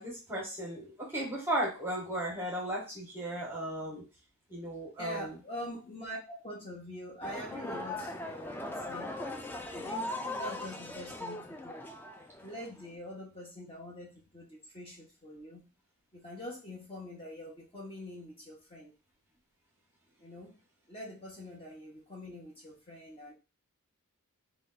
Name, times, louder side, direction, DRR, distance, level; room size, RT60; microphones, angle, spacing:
voice 1, 0.0-4.0 4.5-5.4, right 1 dB, 10° right, -3 dB, 1.1 m, -35 dB
voice 2, 5.0-9.2 9.7-11.9 12.4-15.7 16.1-18.9 20.2-20.6 20.9-23.3, left 1 dB, 25° left, -3 dB, 1.0 m, -44 dB
sound 1, 7.2-12.9, left 2 dB, 10° left, 0.3 m, -39 dB
3.3 x 2.4 x 3.8 m, 0.32 s
head